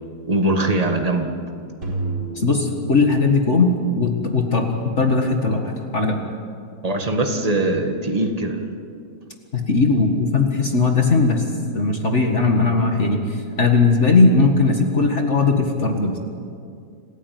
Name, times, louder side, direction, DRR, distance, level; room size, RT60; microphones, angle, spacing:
voice 1, 0.3-1.4 6.8-8.7, right 2 dB, 20° right, 4 dB, 1.8 m, -21 dB
sound 1, 1.8-4.0, right 3 dB, 60° right, 4.9 m, -30 dB
voice 2, 2.4-6.2 9.5-11.4 11.7-16.2, left 3 dB, 40° left, 3 dB, 2.0 m, -18 dB
27.5 x 15.5 x 9.3 m, 2.4 s
omnidirectional pair, 2.0 m